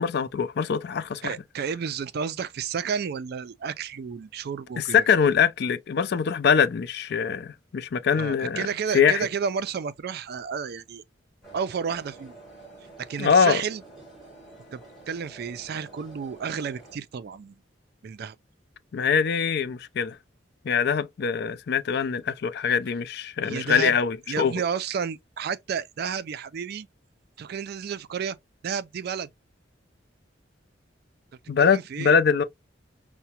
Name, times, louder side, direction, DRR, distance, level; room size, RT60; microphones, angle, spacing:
voice 1, 0.0-1.3 4.8-8.7 8.9-9.3 13.2-13.6 18.9-20.2 20.6-24.5 31.5-32.4, left 6 dB, 60° left, 0.4 m, -23 dB
voice 2, 1.2-5.1 8.1-11.0 11.5-12.3 13.1-13.8 14.7-17.6 18.0-18.4 23.4-24.0 24.3-26.9 27.4-28.4 28.6-29.3 31.6-32.1, right 6 dB, 55° right, 0.4 m, -31 dB
sound 1, 11.4-17.0, right 2 dB, ahead, 2.0 m, -48 dB
5.7 x 2.1 x 2.8 m
head